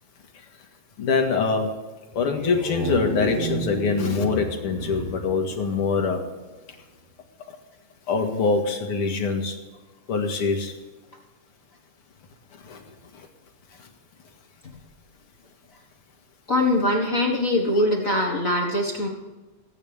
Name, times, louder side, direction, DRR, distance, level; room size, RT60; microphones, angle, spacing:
voice 1, 1.0-1.7 2.1-6.2 8.1-9.5 10.1-10.7 12.7-12.8 17.8-17.9, left 4 dB, 50° left, 4 dB, 2.4 m, -24 dB
sound 1, 2.1-6.4, right 2 dB, 85° right, 6.4 m, -32 dB
voice 2, 16.5-19.1, left 1 dB, 35° left, 0 dB, 1.5 m, -22 dB
25.0 x 8.8 x 3.5 m, 1.3 s
omnidirectional pair, 3.3 m